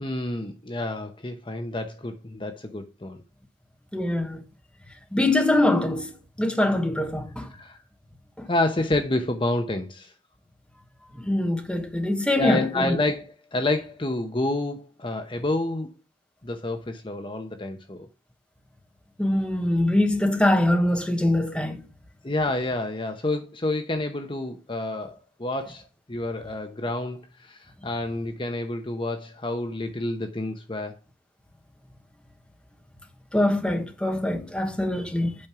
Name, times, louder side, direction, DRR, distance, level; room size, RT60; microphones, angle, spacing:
voice 1, 0.0-3.2 7.5-7.8 8.5-10.1 12.4-15.9 16.4-18.1 22.2-31.0, left 2 dB, 30° left, 0.9 m, -29 dB
voice 2, 3.9-4.4 5.1-6.1 6.4-7.5 8.4-8.5 11.1-13.0 19.2-21.8 33.3-35.3, left 1 dB, 5° left, 1.2 m, -23 dB
8.7 x 5.2 x 6.0 m
head